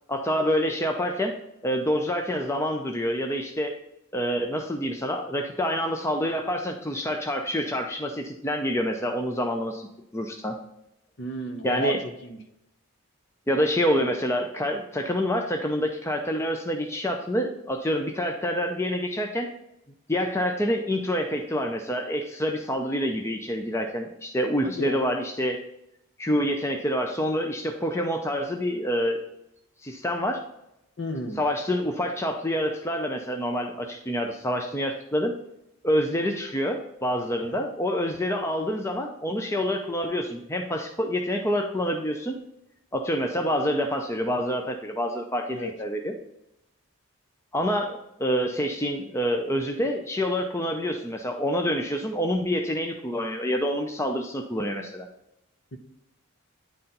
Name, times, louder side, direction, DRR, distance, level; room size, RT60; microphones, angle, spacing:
voice 1, 0.1-1.4 1.6-3.7 4.1-9.9 10.1-10.6 11.6-12.0 13.5-19.5 20.1-25.6 26.2-29.2 29.8-30.4 31.4-35.4 35.8-42.3 42.9-46.1 47.5-55.1, equal, 10° left, 4 dB, 0.5 m, -27 dB
voice 2, 11.2-12.0 12.2-12.4 24.6-25.0 31.0-31.4 37.4-37.6 45.5-45.7, equal, 55° left, 5 dB, 0.9 m, -33 dB
9.7 x 4.3 x 3.9 m, 0.84 s
head